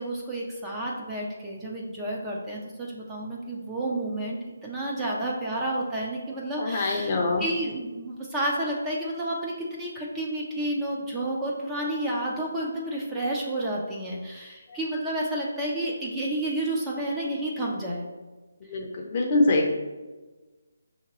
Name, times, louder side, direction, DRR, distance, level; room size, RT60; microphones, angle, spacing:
voice 1, 0.0-18.1, right 1 dB, 10° right, -4 dB, 0.5 m, -30 dB
voice 2, 6.6-7.4 14.9-15.0 18.6-19.7, left 2 dB, 35° left, 1 dB, 0.6 m, -24 dB
5.6 x 2.8 x 3.0 m, 1.2 s
hypercardioid pair, 160°, 0 cm